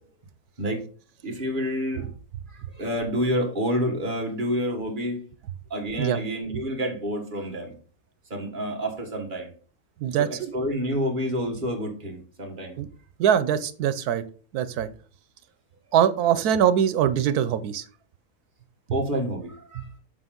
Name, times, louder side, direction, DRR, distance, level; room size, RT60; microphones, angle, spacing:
voice 1, 1.2-2.1 2.5-5.2 5.7-7.7 8.3-9.5 10.2-12.8 18.9-19.9, equal, 35° right, 2 dB, 1.8 m, -28 dB
voice 2, 10.0-10.5 12.8-12.9 13.2-14.2 14.5-14.9 15.9-17.8 18.9-19.0 19.8-19.9, right 9 dB, 90° right, 14 dB, 1.2 m, -23 dB
7.0 x 6.1 x 3.8 m, 0.40 s
omnidirectional pair, 1.6 m